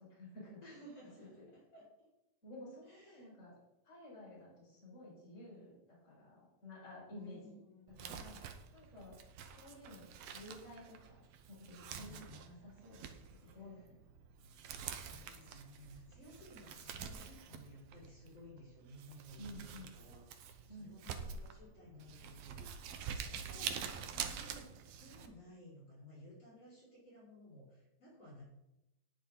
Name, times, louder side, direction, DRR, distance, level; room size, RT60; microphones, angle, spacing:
voice 1, 0.0-0.6 1.2-1.5 2.4-3.5 3.8-7.6 8.0-8.4 8.7-9.2 9.5-10.0 10.3-14.0 19.4-19.9 20.7-21.2 22.9-23.9, left 1 dB, 20° left, -7 dB, 5.6 m, -53 dB
voice 2, 0.6-2.1 2.8-3.3 7.1-8.4 11.8-12.5 13.4-13.6 14.8-24.7 25.0-28.4, equal, 35° left, -9 dB, 5.9 m, -57 dB
Crumpling crinkling, 7.9-25.3, right 7 dB, 80° right, 1.5 m, -47 dB
18.5 x 7.1 x 3.9 m, 0.89 s
omnidirectional pair, 4.3 m